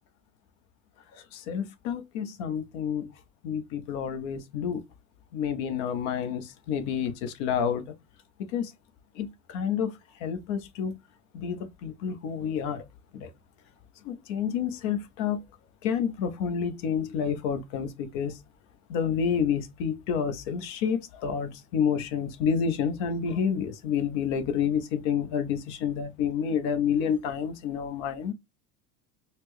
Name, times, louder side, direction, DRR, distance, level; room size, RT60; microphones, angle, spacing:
voice 1, 1.3-3.1 3.4-4.8 5.3-7.9 8.4-8.7 9.2-9.9 10.2-11.0 11.3-12.8 13.1-13.3 14.0-15.4 15.8-18.4 18.9-28.3, left 7 dB, 65° left, 0.9 m, -29 dB
4.2 x 2.2 x 3.1 m
hypercardioid pair, 95°, 41 cm